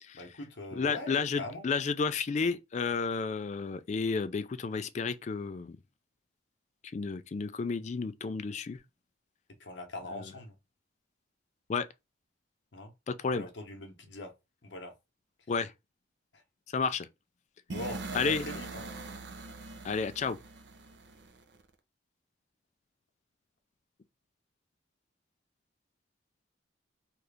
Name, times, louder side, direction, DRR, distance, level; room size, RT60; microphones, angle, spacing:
voice 1, 0.1-1.7 9.6-10.5 12.7-12.9 13.3-14.3 14.6-14.9 17.7-18.8, left 1 dB, 70° left, 0.8 m, -42 dB
voice 2, 0.7-5.8 6.9-8.8 10.1-10.3 11.7-11.9 13.1-13.5 15.5-15.7 16.7-17.1 18.1-18.5 19.8-20.4, left 5 dB, 35° left, 0.3 m, -31 dB
sound 1, 17.7-21.6, right 3 dB, 65° right, 0.5 m, -42 dB
2.8 x 2.5 x 3.3 m
head